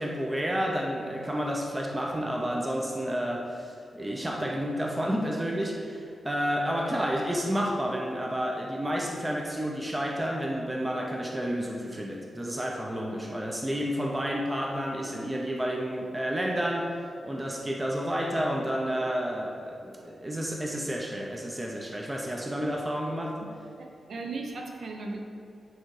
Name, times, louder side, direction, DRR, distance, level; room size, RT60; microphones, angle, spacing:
voice 1, 0.0-16.9 17.2-23.4, equal, 10° right, 0 dB, 0.6 m, -30 dB
voice 2, 23.8-25.2, right 3 dB, 55° right, 2 dB, 0.7 m, -37 dB
9.1 x 3.5 x 4.8 m, 2.4 s
wide cardioid pair, 170°, 0 cm